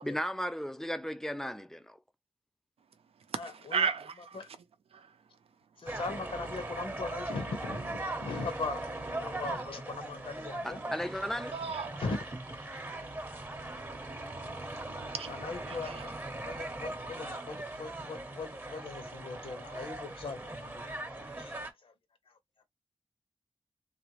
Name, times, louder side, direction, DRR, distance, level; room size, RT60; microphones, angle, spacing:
voice 1, 0.0-2.0 10.6-11.5, equal, 5° left, 0.3 m, -35 dB
voice 2, 2.8-4.6 4.9-6.0 11.5-12.0 12.7-16.2, right 6 dB, 85° right, 0.5 m, -39 dB
voice 3, 5.8-10.8 12.0-12.2 15.4-16.1 16.4-21.9, left 4 dB, 65° left, 0.8 m, -40 dB
sound 1, 5.9-21.7, right 2 dB, 20° right, 0.7 m, -40 dB
3.0 x 2.5 x 3.0 m
wide cardioid pair, 105°, 10 cm